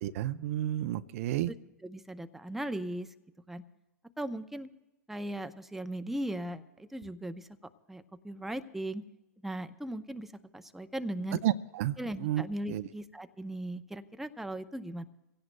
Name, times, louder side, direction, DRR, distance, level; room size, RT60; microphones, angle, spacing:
voice 1, 0.0-1.5 11.4-12.8, right 13 dB, 60° right, 12 dB, 0.5 m, -31 dB
voice 2, 1.8-3.1 3.5-3.6 4.2-4.7 5.1-7.5 7.9-9.0 9.4-11.4 12.0-15.0, right 1 dB, 5° right, 8 dB, 0.6 m, -38 dB
24.0 x 16.5 x 2.2 m, 0.98 s
hypercardioid pair, 105°, 9 cm